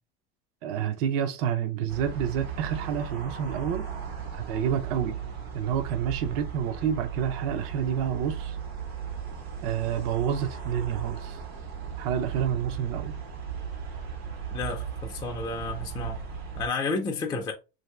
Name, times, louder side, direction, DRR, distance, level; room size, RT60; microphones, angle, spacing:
voice 1, 0.6-3.8 4.3-5.2 5.5-8.6 9.6-11.4 12.0-13.2, right 8 dB, 65° right, 0.6 m, -29 dB
sound 1, 1.9-16.7, right 7 dB, 85° right, 1.3 m, -36 dB
voice 2, 14.5-16.2 16.6-17.5, left 3 dB, 15° left, 0.4 m, -31 dB
2.9 x 2.7 x 3.1 m
supercardioid pair, 125°, 30 cm